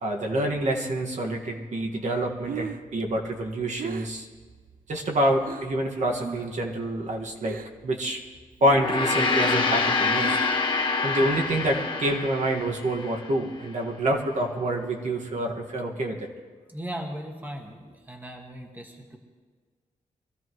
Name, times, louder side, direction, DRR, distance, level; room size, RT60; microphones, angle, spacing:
voice 1, 0.0-4.3 4.9-7.6 7.8-8.2 8.6-10.4 11.0-16.3, right 1 dB, 55° right, 1 dB, 1.8 m, -27 dB
Breathing, 2.2-5.8 6.1-6.6 6.9-7.9 8.2-10.8, right 7 dB, 80° right, 0.6 m, -39 dB
Gong, 8.6-13.2, left 4 dB, 35° left, 1.0 m, -26 dB
voice 2, 16.7-19.2, right 1 dB, 15° right, 1 dB, 1.5 m, -38 dB
24.0 x 15.0 x 3.1 m, 1.5 s
wide cardioid pair, 165°, 14 cm